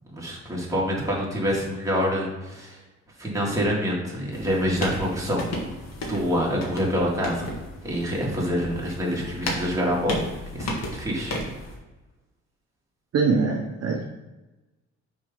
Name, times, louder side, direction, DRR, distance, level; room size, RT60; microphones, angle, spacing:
voice 1, 0.1-2.8 3.2-5.6 6.1-7.5 7.8-11.3, equal, 10° right, -4 dB, 2.3 m, -26 dB
sound 1, 4.3-11.8, left 1 dB, 60° left, 1.5 m, -34 dB
voice 2, 13.1-14.0, right 4 dB, 55° right, 0 dB, 0.8 m, -23 dB
6.0 x 3.8 x 5.2 m, 1.1 s
cardioid pair, 90°, 30 cm